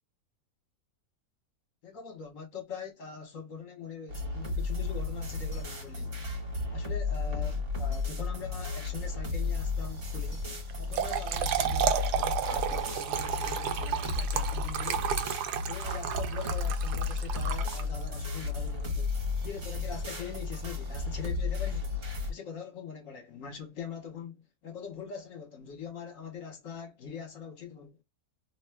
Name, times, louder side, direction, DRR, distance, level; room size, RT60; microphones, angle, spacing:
voice 1, 1.8-6.2 6.7-10.5 10.8-15.1 15.7-22.0 22.3-28.0, left 6 dB, 60° left, 1.3 m, -43 dB
sound 1, 4.1-22.3, left 4 dB, 55° right, 1.5 m, -33 dB
Trickle dribble / Fill (with liquid), 10.7-18.2, right 9 dB, 85° right, 1.1 m, -32 dB
2.9 x 2.1 x 3.3 m
omnidirectional pair, 1.7 m